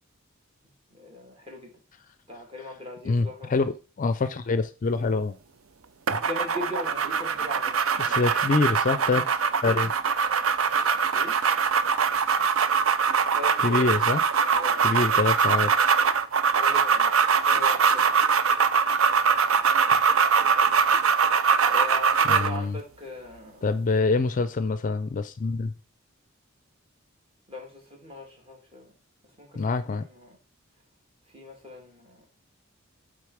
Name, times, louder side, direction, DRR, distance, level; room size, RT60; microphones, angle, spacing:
voice 1, 0.9-1.7 2.3-3.6 6.2-8.2 11.1-11.4 13.3-13.9 14.5-15.0 16.5-18.2 21.6-23.7 27.5-29.0 29.4-30.4 31.3-32.3, left 1 dB, 25° right, 2.4 m, -39 dB
voice 2, 3.1-3.7 4.0-5.4 6.1-6.2 8.0-9.2 9.6-9.9 13.6-14.2 14.8-15.7 22.3-22.8 23.6-25.7 29.6-30.0, left 3 dB, 40° left, 0.4 m, -25 dB
sound 1, 6.1-22.6, right 6 dB, 75° right, 0.6 m, -22 dB
8.4 x 3.8 x 4.7 m
head